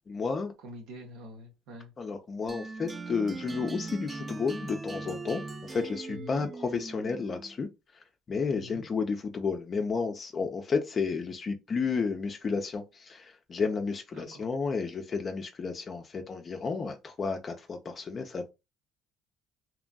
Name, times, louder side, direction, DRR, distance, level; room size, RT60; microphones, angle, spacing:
voice 1, 0.1-0.5 2.0-7.7 8.3-18.5, left 5 dB, 35° left, 0.4 m, -32 dB
voice 2, 0.6-1.9 6.1-6.5 8.4-8.9 14.1-14.5, equal, 80° right, 0.8 m, -45 dB
sound 1, 2.5-7.6, right 3 dB, 25° right, 0.4 m, -40 dB
2.9 x 2.5 x 2.2 m
supercardioid pair, 90°, 0 cm